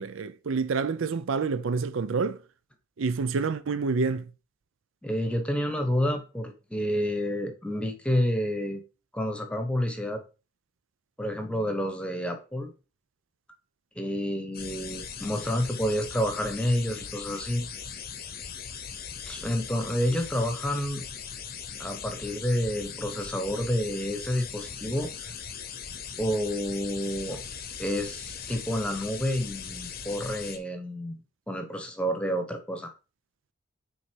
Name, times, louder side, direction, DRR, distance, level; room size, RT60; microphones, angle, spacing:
voice 1, 0.0-2.4 3.0-4.3, right 4 dB, 70° right, 0.5 m, -28 dB
voice 2, 5.0-8.8 9.1-10.2 11.2-12.7 13.9-17.7 19.3-21.0 21.8-25.3 26.2-27.4 27.8-31.2 31.5-32.9, equal, 5° left, 1.0 m, -29 dB
sound 1, 14.5-30.6, left 7 dB, 45° left, 0.8 m, -39 dB
6.3 x 4.1 x 4.6 m
head